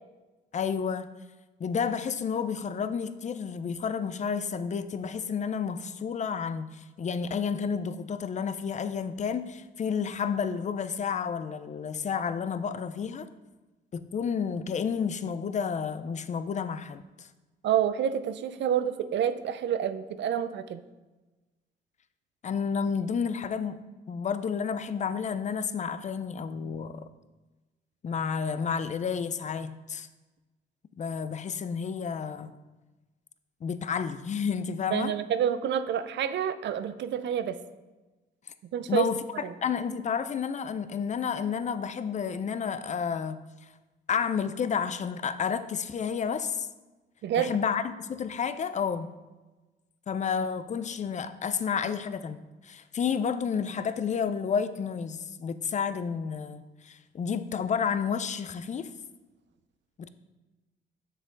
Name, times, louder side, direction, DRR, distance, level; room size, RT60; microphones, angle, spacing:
voice 1, 0.5-1.1 1.6-13.3 13.9-17.3 22.4-23.8 24.1-27.1 28.0-30.1 31.0-32.5 33.6-35.1 38.9-39.2 39.6-43.4 44.1-46.7 47.4-49.1 50.1-58.9 60.0-60.1, left 6 dB, 35° left, 0.5 m, -31 dB
voice 2, 17.6-20.8 34.9-37.6 38.7-39.1 39.4-39.5 47.2-47.5, right 9 dB, 65° right, 0.5 m, -28 dB
7.2 x 6.5 x 3.8 m
cardioid pair, 90°, 20 cm